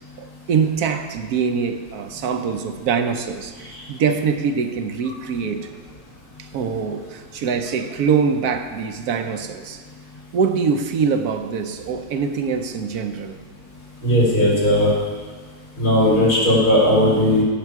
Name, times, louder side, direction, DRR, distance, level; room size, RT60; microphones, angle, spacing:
voice 1, 0.2-5.7 6.4-9.8 10.3-13.4, right 6 dB, 75° right, 7 dB, 1.3 m, -23 dB
voice 2, 14.0-14.9 15.8-17.4, equal, 75° left, -6 dB, 4.0 m, -16 dB
15.5 x 6.8 x 4.8 m, 1.5 s
omnidirectional pair, 1.6 m